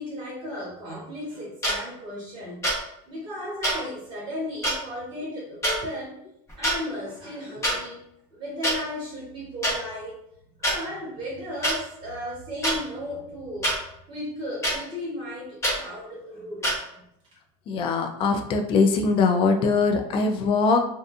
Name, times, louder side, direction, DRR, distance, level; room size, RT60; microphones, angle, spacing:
voice 1, 0.0-2.6 3.1-6.1 6.6-8.0 8.3-10.2 10.6-13.7 14.1-17.0, left 1 dB, 30° right, -5 dB, 1.0 m, -35 dB
sound 1, 1.6-1.8 2.6-2.8 3.6-3.8 4.6-4.8 5.6-5.8 6.5-6.8 7.6-7.8 8.6-8.8 9.6-9.8 10.6-10.8 11.6-11.8 12.6-12.8 13.6-13.8 14.6-14.8 15.6-15.8 16.6-16.8, right 1 dB, 20° left, 0.9 m, -24 dB
voice 2, 17.7-20.8, left 4 dB, 35° left, 4 dB, 0.3 m, -22 dB
2.5 x 2.5 x 2.4 m, 0.76 s
supercardioid pair, 130°, 15 cm